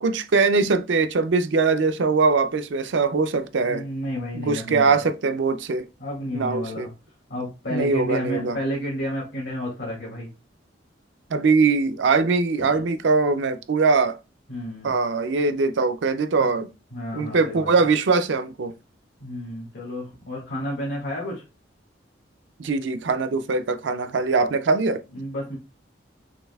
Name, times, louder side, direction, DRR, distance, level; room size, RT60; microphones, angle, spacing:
voice 1, 0.0-3.8 4.3-5.9 6.3-6.9 7.7-8.6 11.3-14.1 14.8-16.7 17.1-18.7 22.6-25.0, right 4 dB, 75° right, 0.5 m, -22 dB
voice 2, 3.6-5.0 6.0-6.9 7.3-10.3 12.6-12.7 14.5-14.9 16.4-16.5 16.9-17.7 19.2-21.4 25.1-25.6, equal, 75° left, 1.9 m, -31 dB
6.4 x 2.7 x 2.3 m
head